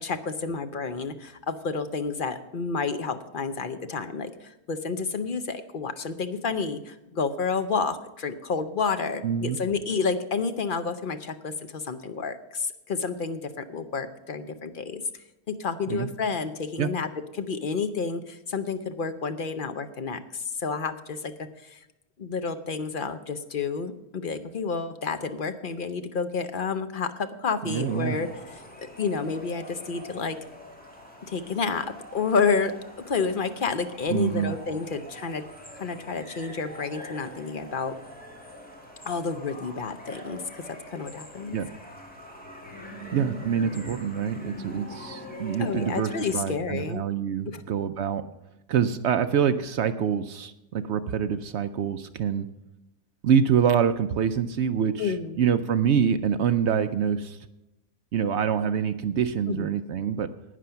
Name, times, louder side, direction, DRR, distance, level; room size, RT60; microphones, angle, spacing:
voice 1, 0.0-15.0 15.5-21.3 21.6-21.8 22.2-30.4 31.3-32.7 33.1-35.4 35.7-37.9 39.0-41.6 45.6-47.0 47.5-47.6 55.0-55.4 59.5-59.7, left 5 dB, 55° left, 9 dB, 0.6 m, -30 dB
voice 2, 9.2-9.6 15.9-16.1 16.8-16.9 27.6-28.2 34.1-34.5 41.5-41.7 43.1-48.2 48.7-52.5 53.2-57.4 58.1-60.3, right 7 dB, 70° right, 10 dB, 0.6 m, -25 dB
sound 1, 27.6-46.4, equal, 5° left, 2.1 m, -43 dB
11.0 x 9.2 x 5.7 m, 0.96 s
omnidirectional pair, 1.7 m